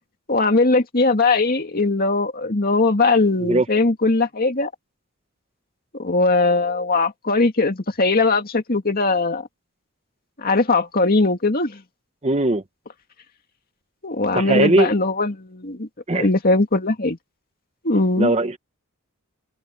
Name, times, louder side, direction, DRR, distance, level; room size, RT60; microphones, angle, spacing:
voice 1, 0.3-4.7 5.9-9.5 10.4-11.8 14.0-17.2 17.8-18.3, left 3 dB, 40° left, 2.2 m, -20 dB
voice 2, 12.2-12.6 14.3-14.9 16.1-16.3 18.2-18.6, right 2 dB, 30° right, 1.0 m, -19 dB
open air
head